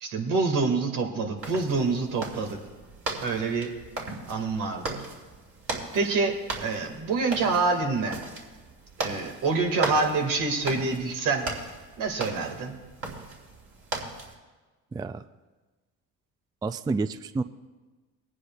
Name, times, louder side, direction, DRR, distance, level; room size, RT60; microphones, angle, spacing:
voice 1, 0.0-2.6 3.2-3.7 4.3-5.0 5.9-8.2 9.0-11.5 12.0-12.7, right 4 dB, 70° right, 3 dB, 1.9 m, -26 dB
sound 1, 1.4-14.3, right 2 dB, 40° right, 3.1 m, -37 dB
voice 2, 14.9-15.2 16.6-17.4, right 4 dB, 15° right, 12 dB, 0.3 m, -29 dB
22.5 x 9.8 x 2.3 m, 1.3 s
supercardioid pair, 75°, 34 cm